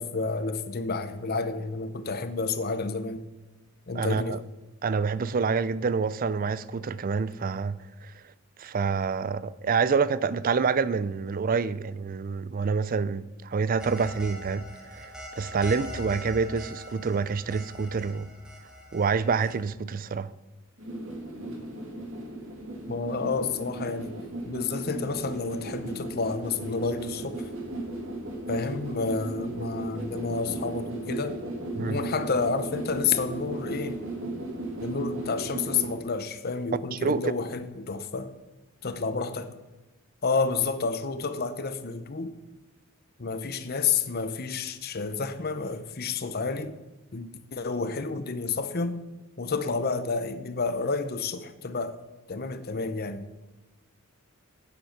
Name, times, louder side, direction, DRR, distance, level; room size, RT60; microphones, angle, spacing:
voice 1, 0.0-3.2 3.9-4.4 22.9-24.2 24.5-27.5 28.5-31.4 31.8-34.0 34.8-38.4 38.8-39.5 40.2-42.4 43.2-46.8 47.1-49.0 49.4-52.0 52.3-53.2, left 4 dB, 45° left, 0.7 m, -30 dB
voice 2, 3.9-4.4 4.8-8.2 8.6-18.3 18.9-20.3 31.8-32.0 36.9-37.3, right 5 dB, 40° right, 0.4 m, -27 dB
sound 1, 13.8-19.6, equal, 5° right, 1.2 m, -42 dB
sound 2, 20.8-35.9, right 1 dB, 60° right, 2.2 m, -36 dB
9.1 x 8.1 x 5.8 m
head